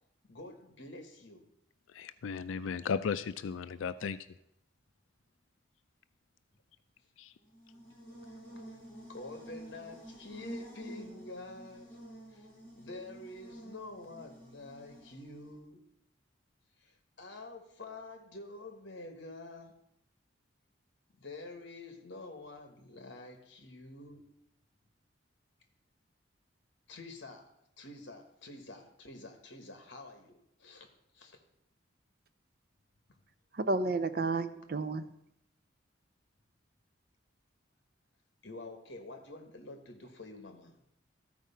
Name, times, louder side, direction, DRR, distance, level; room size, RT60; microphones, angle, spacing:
voice 1, 0.3-1.4 2.6-2.8 9.1-12.0 12.3-12.5 12.8-15.8 16.8-19.8 21.2-24.2 26.9-27.5 27.8-31.4 38.4-40.8, left 2 dB, 65° left, 6 dB, 1.3 m, -48 dB
voice 2, 1.9-4.2 7.2-7.3, left 6 dB, 85° left, 13 dB, 0.4 m, -35 dB
Buzz, 7.4-15.6, right 1 dB, 25° left, 4.3 m, -50 dB
voice 3, 33.5-35.1, right 3 dB, 50° right, 12 dB, 0.5 m, -31 dB
13.5 x 4.7 x 5.6 m, 0.77 s
head